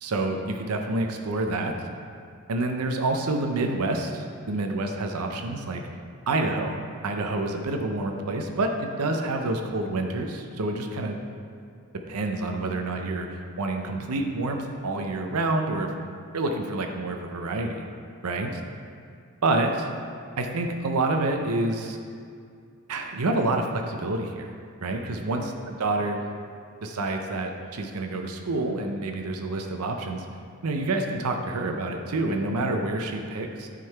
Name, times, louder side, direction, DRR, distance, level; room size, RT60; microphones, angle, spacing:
voice 1, 0.0-1.7 2.5-5.8 6.3-6.8 7.0-11.2 12.1-15.9 16.3-17.8 18.2-18.6 19.4-19.9 20.4-22.0 22.9-24.5 24.8-26.2 26.8-30.3 30.6-33.7, right 2 dB, 85° right, 4 dB, 0.6 m, -28 dB
9.3 x 3.8 x 4.5 m, 2.3 s
head